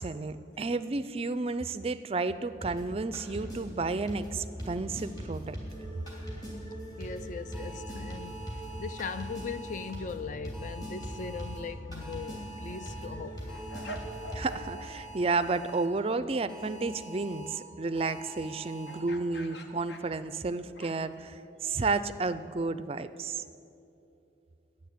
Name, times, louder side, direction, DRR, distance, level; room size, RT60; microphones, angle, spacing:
voice 1, 0.0-5.6 14.3-23.4, right 3 dB, 30° right, 0.4 m, -32 dB
sound 1, 2.6-14.6, equal, 20° left, 2.9 m, -41 dB
voice 2, 7.0-8.5 8.8-13.5, left 5 dB, 40° left, 0.4 m, -39 dB
sound 2, 7.5-9.9 10.5-11.6 12.0-13.1 13.5-15.9 16.5-17.5 18.0-19.0, right 2 dB, ahead, 1.9 m, -47 dB
sound 3, 11.8-12.1 12.6-15.1 15.4-15.6 18.9-21.2, equal, 65° left, 1.1 m, -46 dB
11.5 x 9.5 x 8.4 m
head